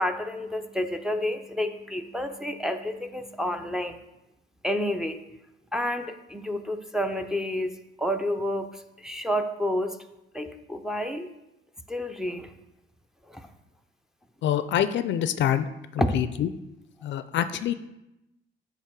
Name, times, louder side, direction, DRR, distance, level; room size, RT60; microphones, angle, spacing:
voice 1, 0.0-4.0 4.6-5.2 5.7-7.7 8.0-8.7 9.0-10.0 10.3-11.3 11.9-12.5 13.3-13.4 16.0-16.2, equal, ahead, 5 dB, 0.5 m, -29 dB
voice 2, 14.4-15.7 15.9-16.5 17.0-17.7, left 10 dB, 65° left, 12 dB, 0.4 m, -26 dB
8.2 x 3.0 x 5.9 m, 0.91 s
cardioid pair, 90°, 20 cm